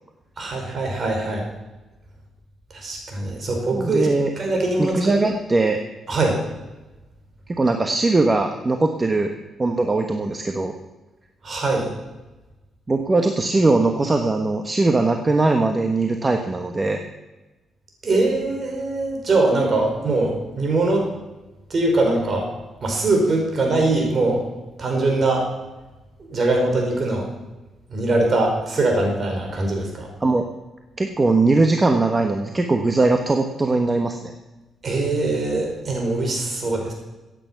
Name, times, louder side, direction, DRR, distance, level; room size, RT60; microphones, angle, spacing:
voice 1, 0.4-1.4 2.7-4.1 4.4-5.1 6.1-6.4 11.4-11.9 18.0-21.1 21.7-22.5 22.8-24.4 24.8-25.5 26.3-27.3 27.9-30.1 34.8-36.9, right 2 dB, 45° right, 1 dB, 5.1 m, -22 dB
voice 2, 3.7-4.3 4.8-5.8 7.5-9.3 9.6-10.7 12.9-17.0 30.2-30.5 31.0-34.3, right 3 dB, 25° right, 5 dB, 1.2 m, -20 dB
16.0 x 9.1 x 5.9 m, 1.1 s
cardioid pair, 85°, 0 cm